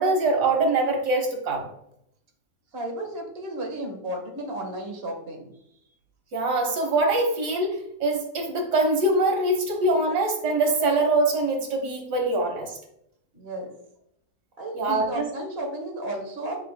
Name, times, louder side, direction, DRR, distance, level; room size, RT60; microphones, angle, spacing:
voice 1, 0.0-1.7 6.3-12.8 14.8-15.3, right 2 dB, 90° right, 3 dB, 1.9 m, -23 dB
voice 2, 2.7-5.5 13.3-13.8 14.6-16.6, right 1 dB, 40° right, 1 dB, 1.7 m, -33 dB
9.3 x 5.6 x 2.2 m, 0.76 s
omnidirectional pair, 1.7 m